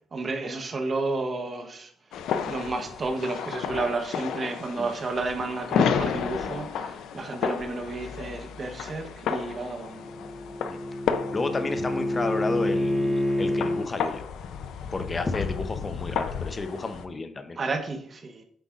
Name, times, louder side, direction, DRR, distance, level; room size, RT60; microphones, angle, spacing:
voice 1, 0.1-1.9 2.5-10.0 17.6-18.4, right 3 dB, 40° right, 1.0 m, -31 dB
sound 1, 2.1-17.0, left 7 dB, 80° left, 0.5 m, -32 dB
Bowed string instrument, 9.8-13.9, left 1 dB, 5° left, 2.1 m, -28 dB
voice 2, 11.3-14.2 14.9-17.6, left 3 dB, 30° left, 0.7 m, -31 dB
7.7 x 5.4 x 2.5 m
cardioid pair, 90°, 0 cm